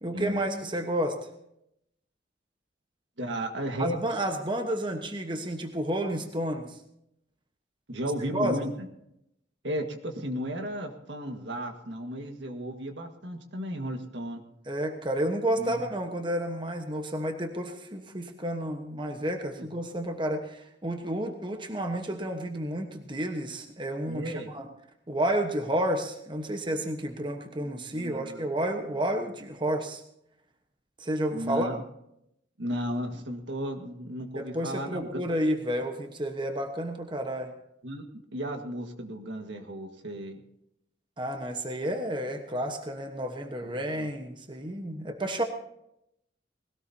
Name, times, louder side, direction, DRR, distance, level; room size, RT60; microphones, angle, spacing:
voice 1, 0.0-1.2 3.8-6.8 8.3-8.6 14.7-24.7 25.1-30.0 31.0-31.7 34.3-37.5 41.2-45.4, right 1 dB, 25° right, 4 dB, 1.2 m, -31 dB
voice 2, 3.2-4.2 7.9-8.9 9.6-14.4 15.5-15.8 19.6-19.7 24.1-24.5 27.6-28.5 31.3-31.8 32.6-35.2 37.8-38.0 38.3-40.4 43.6-44.1, equal, 70° right, 5 dB, 1.7 m, -34 dB
20.5 x 17.5 x 2.8 m, 0.78 s
head